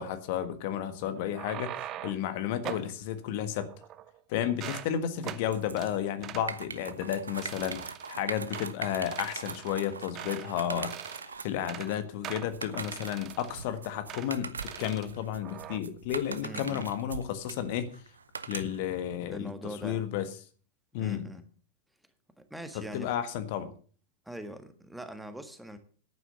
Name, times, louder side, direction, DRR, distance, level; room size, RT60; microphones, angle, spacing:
voice 1, 0.0-3.7 4.3-17.9 18.5-20.3 20.9-21.3 22.7-23.7, left 10 dB, 50° left, 10 dB, 1.5 m, -32 dB
sound 1, 1.2-2.3 2.6-2.9 3.6-4.2 4.5-4.9 5.2-5.4 5.8-5.9 6.2-6.5 6.9-7.1 7.4-8.1 8.5-8.7 9.1-10.5 10.8-11.3 11.6-11.9 12.2-13.6 14.1-14.3 14.6-15.1 15.4-15.8, right 11 dB, 35° right, 0.9 m, -42 dB
sound 2, 5.5-18.9, right 5 dB, 75° right, 0.9 m, -41 dB
voice 2, 16.4-16.9 19.3-20.0 21.0-21.4 22.4-23.1 24.2-25.8, equal, 5° right, 8 dB, 1.6 m, -42 dB
11.0 x 9.2 x 6.8 m, 0.42 s
figure-of-eight pair, 90°, 0 cm